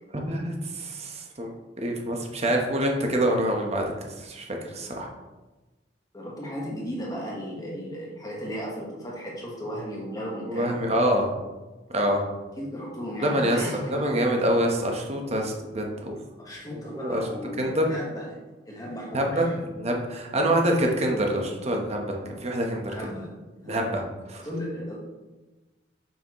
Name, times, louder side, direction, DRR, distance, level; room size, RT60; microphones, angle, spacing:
voice 1, 0.1-1.5 1.8-3.8 4.2-5.1 10.5-11.3 11.9-12.2 13.2-16.1 16.7-17.2 17.6-17.8 19.1-19.5 19.8-22.9 23.7-24.0 24.3-24.4, right 1 dB, 40° right, 1 dB, 1.1 m, -26 dB
voice 2, 6.1-10.8 12.6-14.2 16.4-18.3 18.7-19.5 20.3-20.7 22.8-23.9 24.4-25.0, equal, 20° left, -3 dB, 1.4 m, -35 dB
7.0 x 5.9 x 3.1 m, 1.2 s
head